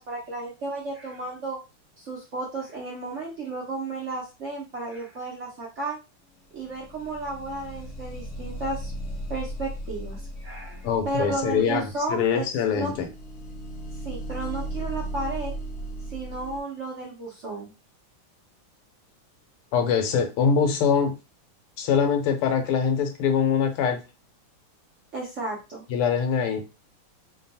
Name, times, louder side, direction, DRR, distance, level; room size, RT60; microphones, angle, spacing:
voice 1, 0.0-1.6 2.0-6.0 6.5-8.9 9.3-12.5 12.7-12.9 14.0-15.5 16.1-17.7 25.1-25.8, right 2 dB, 80° right, -3 dB, 0.6 m, -33 dB
sound 1, 6.5-16.6, right 1 dB, 55° left, 0.9 m, -37 dB
voice 2, 10.8-13.1 19.7-21.1 21.8-24.0 25.9-26.7, left 6 dB, 90° left, 5 dB, 1.7 m, -23 dB
3.6 x 2.2 x 4.0 m, 0.28 s
omnidirectional pair, 2.4 m